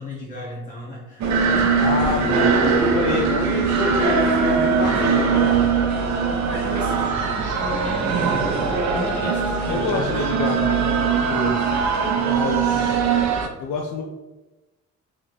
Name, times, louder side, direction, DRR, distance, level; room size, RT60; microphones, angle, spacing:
voice 1, 0.0-1.7 2.0-2.3 6.5-10.3 12.0-12.4 12.7-12.9, left 2 dB, 25° left, -5 dB, 1.0 m, -35 dB
sound 1, 1.2-13.5, right 5 dB, 65° right, 0.7 m, -21 dB
voice 2, 1.8-5.7 9.7-11.9 12.3-13.0 13.6-14.0, left 4 dB, 80° left, 1 dB, 0.6 m, -28 dB
3.1 x 3.1 x 4.0 m, 1.1 s
cardioid pair, 90°, 30 cm